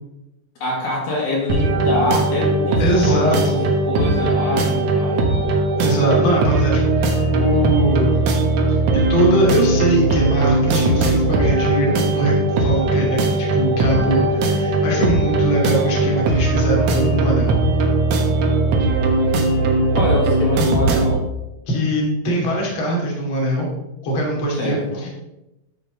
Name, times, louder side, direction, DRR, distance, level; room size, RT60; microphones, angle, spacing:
voice 1, 0.6-3.6 3.9-5.3 19.9-21.2 24.6-25.1, left 2 dB, 65° left, -3 dB, 3.8 m, -24 dB
sound 1, 1.5-21.2, right 2 dB, 85° right, 1.4 m, -19 dB
voice 2, 2.8-3.7 5.8-8.3 8.7-12.3 12.6-17.6 21.7-23.7 24.0-25.1, right 1 dB, 35° left, -3 dB, 2.9 m, -21 dB
11.5 x 7.3 x 3.9 m, 0.95 s
omnidirectional pair, 4.8 m